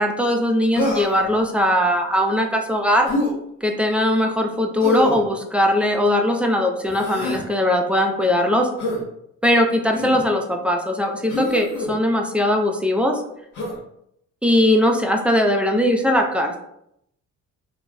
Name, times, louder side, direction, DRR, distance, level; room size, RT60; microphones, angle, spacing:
voice 1, 0.0-3.1 3.6-8.7 9.4-13.2 14.4-16.6, left 1 dB, 5° right, 2 dB, 0.3 m, -20 dB
Human voice, 0.7-1.3 3.0-3.3 4.8-5.2 6.9-7.4 8.8-9.0 9.9-10.2 11.3-11.9 13.5-13.8, left 1 dB, 75° left, 1.0 m, -25 dB
2.3 x 2.0 x 3.5 m, 0.75 s
cardioid pair, 90°, 30 cm